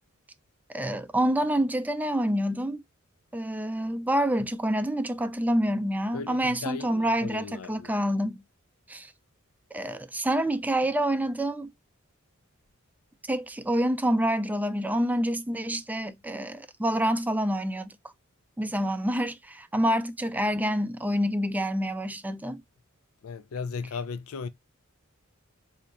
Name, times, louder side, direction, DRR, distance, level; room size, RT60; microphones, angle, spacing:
voice 1, 0.7-2.8 3.3-8.4 8.9-9.1 9.7-11.7 13.3-17.9 18.6-22.6, equal, 10° right, 0.3 m, -27 dB
voice 2, 6.1-7.9 23.2-24.5, left 5 dB, 90° left, 0.5 m, -36 dB
4.3 x 2.8 x 2.4 m
head